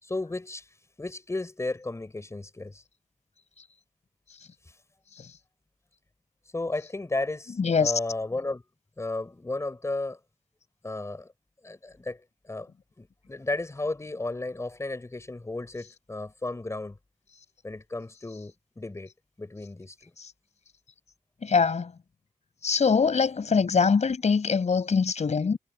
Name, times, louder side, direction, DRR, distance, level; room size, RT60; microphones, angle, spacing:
voice 1, 0.0-0.7 1.0-2.8 6.5-8.6 9.0-10.2 10.8-11.3 11.6-12.7 13.0-17.0 17.6-19.1 19.4-19.9, left 2 dB, 20° left, 5.9 m, -33 dB
voice 2, 7.6-7.9 20.2-20.3 21.4-21.9 22.6-25.6, left 5 dB, 50° left, 5.5 m, -23 dB
wide cardioid pair, 155°, 15 cm